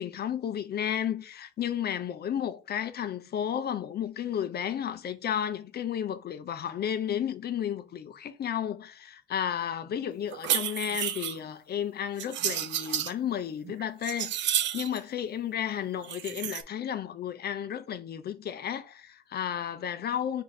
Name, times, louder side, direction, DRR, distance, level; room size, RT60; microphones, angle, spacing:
voice 1, 0.0-20.4, left 9 dB, 55° left, 0.6 m, -33 dB
sound 1, 10.3-11.4 12.2-13.1 13.6-15.0 16.0-16.6, right 11 dB, 65° right, 0.5 m, -31 dB
4.7 x 2.6 x 3.9 m
cardioid pair, 90°, 20 cm